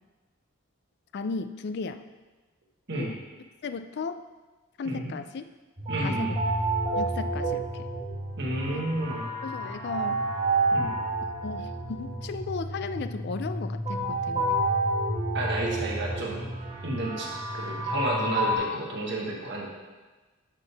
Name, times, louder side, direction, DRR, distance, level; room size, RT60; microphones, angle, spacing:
voice 1, 1.1-2.0 2.9-3.2 3.6-4.2 4.8-5.4 6.0-6.4 7.0-7.9 8.7-8.9 9.4-10.2 11.4-14.6, left 4 dB, 55° left, 10 dB, 0.4 m, -35 dB
sound 1, 5.8-18.6, right 2 dB, 30° right, 1.8 m, -30 dB
voice 2, 5.9-6.3 8.4-9.3 10.7-11.0 15.3-16.5 16.8-19.7, right 2 dB, 60° right, -2 dB, 1.5 m, -31 dB
12.0 x 4.5 x 3.4 m, 1.2 s
head